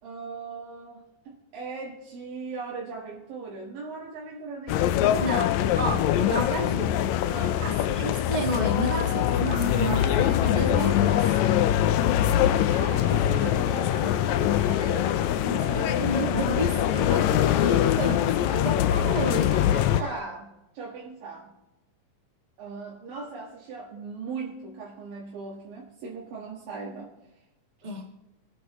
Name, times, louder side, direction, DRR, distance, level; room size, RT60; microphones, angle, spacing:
voice 1, 0.0-6.0 7.3-7.7 12.2-14.6 17.4-17.6 20.0-21.5 22.6-27.1, right 4 dB, 85° right, -5 dB, 3.5 m, -39 dB
sound 1, 4.7-20.0, left 11 dB, 85° left, 1.6 m, -23 dB
voice 2, 5.0-7.2 7.6-11.2 15.4-19.7 27.8-28.1, right 1 dB, 20° right, 1 dB, 1.1 m, -31 dB
Laughter, 9.3-20.2, left 2 dB, 25° left, 1.8 m, -39 dB
24.0 x 9.6 x 3.1 m, 0.97 s
omnidirectional pair, 3.9 m